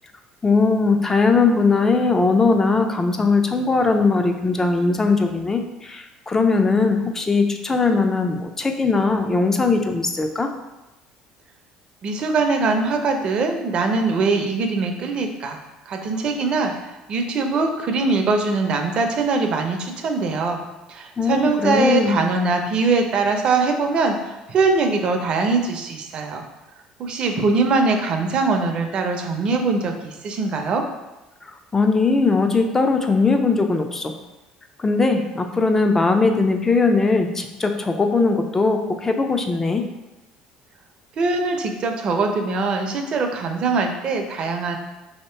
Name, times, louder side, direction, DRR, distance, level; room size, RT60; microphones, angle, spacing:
voice 1, 0.4-10.5 21.2-22.2 31.4-34.1 34.8-39.9, left 3 dB, 20° left, 5 dB, 0.5 m, -20 dB
voice 2, 12.0-15.6 15.9-20.6 20.9-26.4 27.0-30.8 41.2-44.8, right 3 dB, 50° right, 4 dB, 0.6 m, -22 dB
3.0 x 2.9 x 4.4 m, 1.0 s
supercardioid pair, 90°, 2 cm